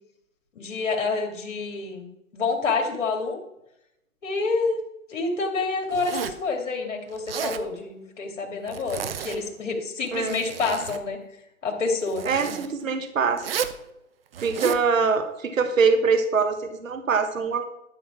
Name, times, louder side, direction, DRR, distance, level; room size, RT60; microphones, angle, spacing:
voice 1, 0.6-2.1 2.3-3.4 4.2-4.8 5.1-11.2 11.6-12.3, left 4 dB, 65° left, 2 dB, 2.5 m, -28 dB
Zipper (clothing), 5.9-6.5 7.1-7.7 8.7-9.4 10.0-11.0 12.1-12.7 13.4-13.8 14.3-14.9, right 7 dB, 45° right, 0.8 m, -32 dB
voice 2, 12.2-13.4 14.4-17.6, right 5 dB, 75° right, 8 dB, 1.4 m, -23 dB
12.0 x 5.8 x 6.0 m, 0.86 s
hypercardioid pair, 150°, 41 cm